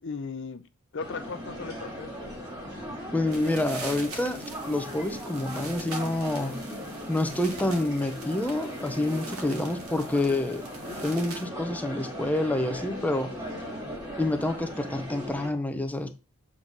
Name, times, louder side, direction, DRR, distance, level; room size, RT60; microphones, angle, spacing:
voice 1, 0.0-2.2, left 4 dB, 60° left, 0.6 m, -37 dB
sound 1, 1.0-15.5, equal, 15° right, 2.2 m, -38 dB
voice 2, 3.1-6.6 7.1-10.6 11.0-13.3 14.2-16.1, left 1 dB, 5° left, 0.7 m, -28 dB
sound 2, 3.2-11.5, right 3 dB, 90° right, 2.0 m, -44 dB
7.6 x 3.9 x 3.8 m
head